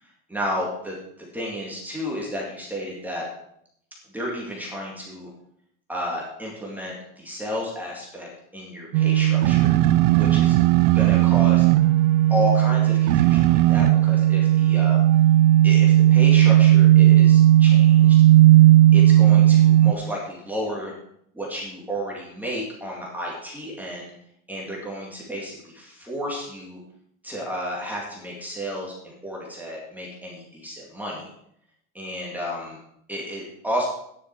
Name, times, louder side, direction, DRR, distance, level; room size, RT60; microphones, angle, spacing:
voice 1, 0.0-3.3 4.1-5.3 5.9-9.8 10.2-10.5 10.9-11.7 12.3-15.0 15.6-18.2 18.9-20.9 21.3-24.1 24.5-26.8 27.2-31.3 31.9-32.8 33.1-33.9, equal, 5° right, -4 dB, 2.2 m, -32 dB
sound 1, 8.9-19.9, right 13 dB, 65° right, 0.6 m, -15 dB
11.0 x 10.0 x 4.6 m, 0.72 s
supercardioid pair, 160°, 41 cm